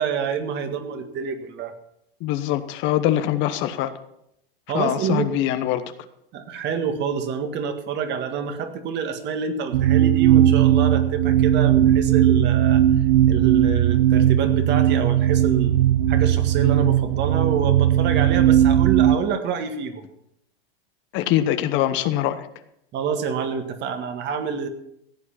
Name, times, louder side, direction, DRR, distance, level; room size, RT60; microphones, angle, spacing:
voice 1, 0.0-1.7 4.7-5.3 6.3-12.8 13.3-20.0 22.9-24.7, right 7 dB, 35° right, 7 dB, 1.9 m, -27 dB
voice 2, 2.2-3.9 4.7-5.8 21.1-22.5, left 12 dB, 40° left, 11 dB, 1.0 m, -23 dB
sound 1, 9.7-19.2, right 11 dB, 65° right, 0.8 m, -18 dB
15.5 x 8.6 x 5.8 m, 0.77 s
hypercardioid pair, 105°, 29 cm